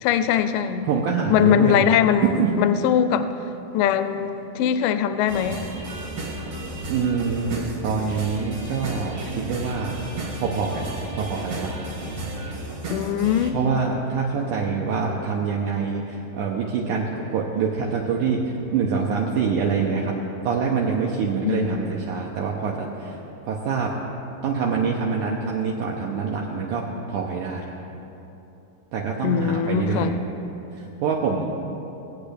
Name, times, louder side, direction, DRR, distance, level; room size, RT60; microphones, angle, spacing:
voice 1, 0.0-0.9 1.3-3.3 3.7-5.7 12.9-13.6 21.4-21.8 29.2-30.2, left 9 dB, 85° left, 11 dB, 1.9 m, -21 dB
voice 2, 0.9-1.9 2.4-2.6 6.9-9.2 9.5-10.0 10.4-11.7 13.5-20.1 20.4-23.2 23.5-23.9 24.4-27.7 28.9-30.2 30.7-31.5, right 5 dB, 80° right, -2 dB, 1.9 m, -25 dB
sound 1, 5.3-13.5, right 1 dB, 60° right, 2.4 m, -33 dB
19.5 x 8.5 x 3.4 m, 3.0 s
omnidirectional pair, 4.3 m